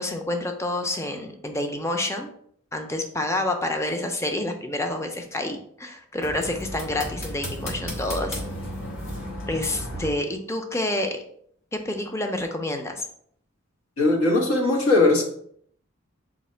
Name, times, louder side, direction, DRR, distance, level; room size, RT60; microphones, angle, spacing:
voice 1, 0.0-2.3 2.7-8.4 9.5-11.2 11.7-13.0, left 1 dB, 15° left, 4 dB, 0.4 m, -28 dB
sound 1, 6.2-10.1, equal, 70° left, 1.4 m, -33 dB
voice 2, 14.0-15.2, left 2 dB, 90° left, -1 dB, 1.1 m, -19 dB
4.0 x 2.7 x 4.3 m, 0.66 s
head